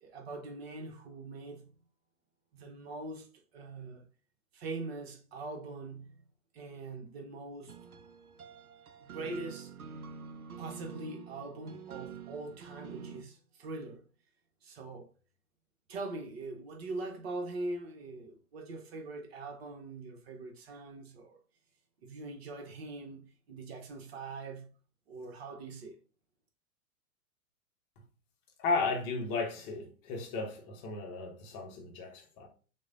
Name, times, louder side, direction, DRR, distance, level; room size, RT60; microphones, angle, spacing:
voice 1, 0.0-1.7 2.5-3.3 3.5-4.1 4.5-6.2 6.5-7.8 9.0-9.7 10.6-14.0 14.6-15.1 15.9-21.4 22.0-24.7 25.1-26.0, right 2 dB, 45° right, 0.9 m, -42 dB
sound 1, 7.7-13.2, right 7 dB, 80° right, 0.6 m, -47 dB
voice 2, 28.6-32.5, left 3 dB, 25° left, 0.8 m, -34 dB
6.2 x 2.2 x 2.5 m
figure-of-eight pair, 100°, 43 cm